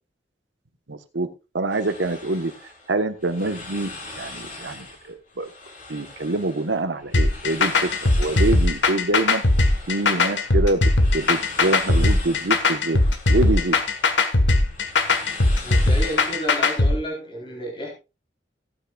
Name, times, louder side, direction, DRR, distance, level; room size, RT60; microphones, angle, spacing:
voice 1, 0.9-1.3 1.5-2.5 2.9-3.9 4.1-5.5 5.9-9.4 9.9-10.8 11.1-13.0 13.3-13.8, right 2 dB, 85° right, 1.3 m, -25 dB
sound 1, 1.7-16.6, left 2 dB, 50° left, 4.3 m, -41 dB
sound 2, 7.1-16.9, left 2 dB, 85° left, 1.6 m, -19 dB
voice 2, 15.6-17.9, equal, 30° left, 3.8 m, -31 dB
17.5 x 9.0 x 2.4 m
head